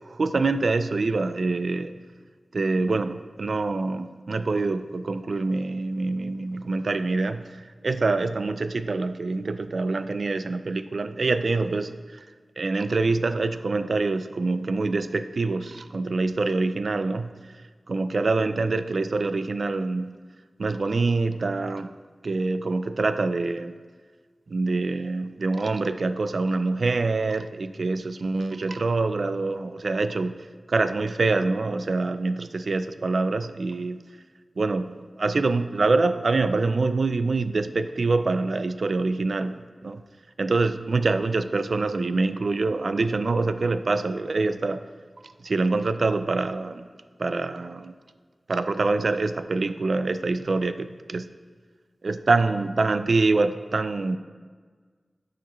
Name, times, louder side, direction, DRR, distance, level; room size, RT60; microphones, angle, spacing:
voice 1, 0.1-2.0 2.5-12.3 12.6-17.3 17.9-20.2 20.6-21.9 22.2-23.7 24.5-34.0 34.6-40.0 40.4-44.9 45.2-46.9 47.2-47.9 48.5-51.3 52.0-54.2, right 3 dB, 65° right, 11 dB, 0.3 m, -25 dB
12.5 x 5.0 x 3.0 m, 1.5 s
wide cardioid pair, 80°, 0 cm